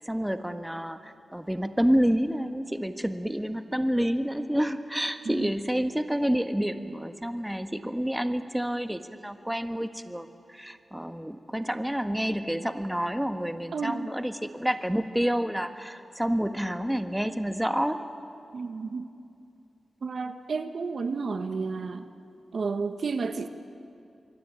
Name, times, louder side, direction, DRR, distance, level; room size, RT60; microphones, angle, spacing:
voice 1, 0.0-18.0, equal, 5° right, 8 dB, 1.5 m, -29 dB
voice 2, 13.7-14.1 18.5-19.0 20.0-22.1 22.5-23.5, right 4 dB, 70° right, 8 dB, 1.3 m, -31 dB
27.0 x 23.0 x 9.0 m, 2.6 s
cardioid pair, 55°, 0 cm